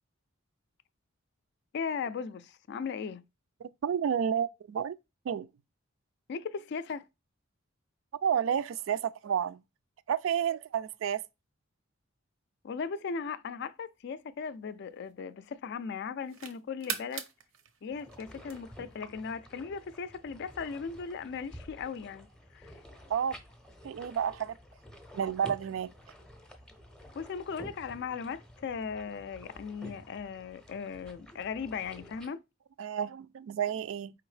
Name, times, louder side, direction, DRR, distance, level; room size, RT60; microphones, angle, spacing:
voice 1, 1.7-3.2 6.3-7.0 12.6-17.2 17.8-22.3 22.5-22.7 27.1-32.4, left 5 dB, 55° left, 0.3 m, -37 dB
voice 2, 3.6-5.0 5.3-5.5 8.2-9.6 10.1-11.2 23.1-23.4 23.8-24.6 25.1-25.9 32.8-34.1, right 8 dB, 75° right, 0.3 m, -30 dB
sound 1, 13.8-15.5 16.0-19.0, right 8 dB, 90° right, 0.7 m, -42 dB
sound 2, 17.9-32.3, equal, 5° left, 0.6 m, -51 dB
4.6 x 3.5 x 3.2 m
head